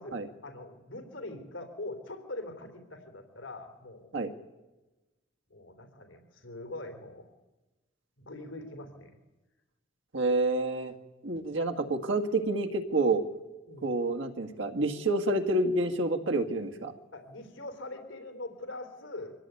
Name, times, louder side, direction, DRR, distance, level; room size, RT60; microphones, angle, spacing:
voice 1, 0.0-4.1 5.5-7.3 8.2-9.2 11.3-11.4 13.7-13.9 17.1-19.3, left 2 dB, 80° left, 5 dB, 3.4 m, -43 dB
voice 2, 10.1-10.9 11.2-13.2 13.8-16.9, right 2 dB, 80° right, 5 dB, 2.0 m, -28 dB
24.5 x 17.5 x 9.3 m, 1.1 s
head